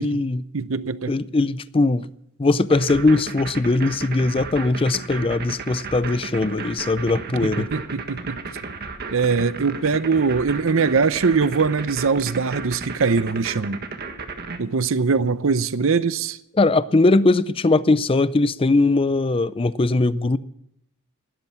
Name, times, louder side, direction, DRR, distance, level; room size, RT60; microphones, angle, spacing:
voice 1, 0.0-0.4 1.1-2.1 2.4-7.7 16.6-20.4, left 2 dB, 25° left, 0.5 m, -20 dB
voice 2, 0.5-1.1 7.4-8.4 9.1-13.8 14.6-16.4, right 5 dB, 70° right, 0.7 m, -22 dB
sound 1, 2.7-14.6, right 4 dB, 50° right, 1.6 m, -33 dB
16.5 x 12.0 x 6.0 m
head